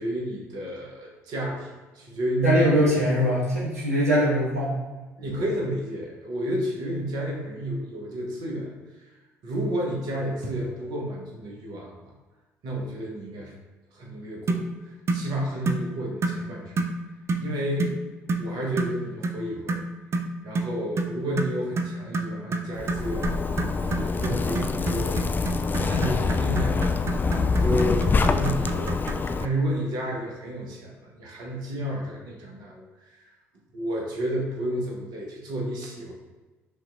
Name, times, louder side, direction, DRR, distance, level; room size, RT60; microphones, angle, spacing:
voice 1, 0.0-1.7 1.9-3.2 5.2-8.7 9.4-11.9 12.6-13.5 13.9-16.7 17.4-17.9 18.4-19.8 20.4-23.4 23.9-25.3 25.9-26.9 27.5-33.2 33.7-36.1, right 1 dB, 60° right, -2 dB, 1.1 m, -31 dB
voice 2, 2.4-4.7, equal, 90° right, -7 dB, 0.9 m, -22 dB
sound 1, 14.5-14.7 15.1-15.3 15.7-15.9 16.2-16.4 16.8-17.0 17.3-17.5 17.8-18.0 18.3-18.5 18.8-19.0 19.2-19.4 19.7-29.3, right 3 dB, 35° right, 0.5 m, -29 dB
Zipper (clothing), 22.8-29.5, left 4 dB, 25° left, 0.3 m, -25 dB
5.7 x 2.9 x 2.6 m, 1.2 s
figure-of-eight pair, 55°, 8 cm